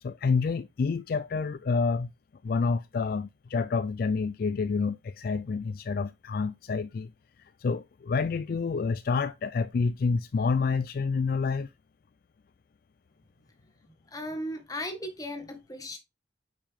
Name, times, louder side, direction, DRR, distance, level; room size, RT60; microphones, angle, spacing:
voice 1, 0.0-2.1 2.4-7.1 7.4-11.7, left 4 dB, 50° left, 0.3 m, -28 dB
voice 2, 14.1-16.0, left 1 dB, 20° left, 1.7 m, -36 dB
8.8 x 5.1 x 3.4 m
head